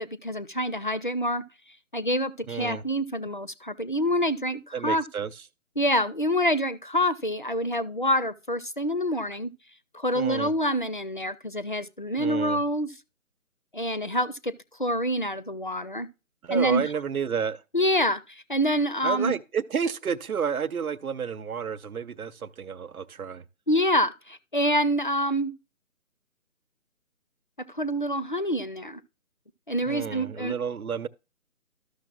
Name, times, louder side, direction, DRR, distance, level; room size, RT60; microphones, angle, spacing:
voice 1, 0.0-1.4 1.9-5.0 5.8-9.5 9.9-12.9 13.7-14.5 14.8-16.1 16.5-16.9 17.7-19.3 23.7-25.5 27.7-29.0 29.7-30.6, equal, 40° left, 0.4 m, -26 dB
voice 2, 2.5-2.8 4.7-5.3 10.1-10.5 12.2-12.6 16.4-17.6 19.0-23.4 29.9-31.1, right 6 dB, 75° right, 0.9 m, -30 dB
13.5 x 6.4 x 2.4 m
figure-of-eight pair, 160°, 44 cm